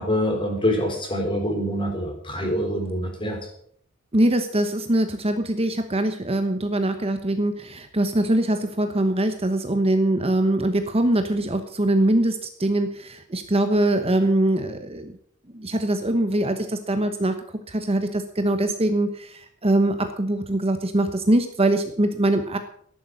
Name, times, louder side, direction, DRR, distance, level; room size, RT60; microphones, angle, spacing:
voice 1, 0.0-3.4, equal, 25° left, 3 dB, 4.0 m, -25 dB
voice 2, 4.1-15.1 15.5-17.4 17.7-22.6, right 1 dB, 30° right, 7 dB, 1.1 m, -23 dB
13.5 x 11.5 x 6.4 m, 0.63 s
head